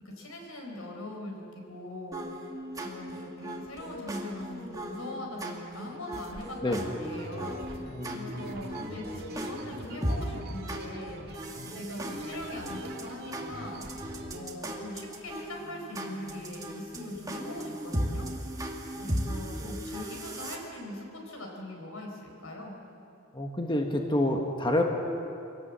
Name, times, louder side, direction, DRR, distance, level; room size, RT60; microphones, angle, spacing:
voice 1, 0.0-2.2 2.8-13.8 14.3-18.3 19.0-22.8, left 1 dB, 85° left, 1 dB, 4.7 m, -41 dB
sound 1, 2.1-20.6, equal, 15° right, 2.0 m, -37 dB
sound 2, 5.8-6.5 7.1-14.4, right 2 dB, 50° right, 1.8 m, -45 dB
voice 2, 7.9-8.5 23.3-24.8, left 1 dB, 25° left, 2 dB, 1.4 m, -28 dB
24.0 x 18.0 x 7.6 m, 2.8 s
head